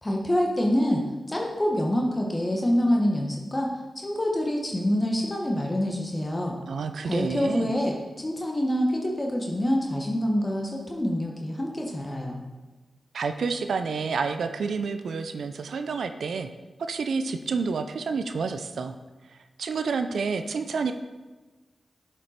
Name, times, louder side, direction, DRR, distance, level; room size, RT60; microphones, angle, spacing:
voice 1, 0.0-6.6 7.0-12.4, equal, 30° left, 0 dB, 1.1 m, -26 dB
voice 2, 6.7-7.7 13.1-16.5 16.9-19.0 19.3-20.9, right 5 dB, 80° right, 8 dB, 0.4 m, -29 dB
7.2 x 5.1 x 4.3 m, 1.2 s
cardioid pair, 40°, 0 cm